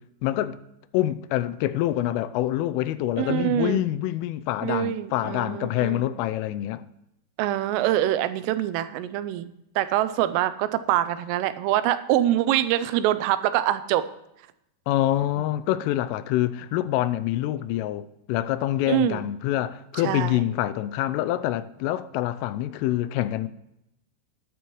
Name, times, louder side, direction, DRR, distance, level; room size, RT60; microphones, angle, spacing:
voice 1, 0.2-0.6 0.9-6.8 14.9-23.5, left 14 dB, 85° left, 3.2 m, -26 dB
voice 2, 3.2-3.8 4.6-6.1 7.4-9.5 9.8-14.1 18.9-19.3 20.0-20.4, right 12 dB, 90° right, 3.3 m, -24 dB
19.0 x 10.0 x 3.1 m
omnidirectional pair, 5.7 m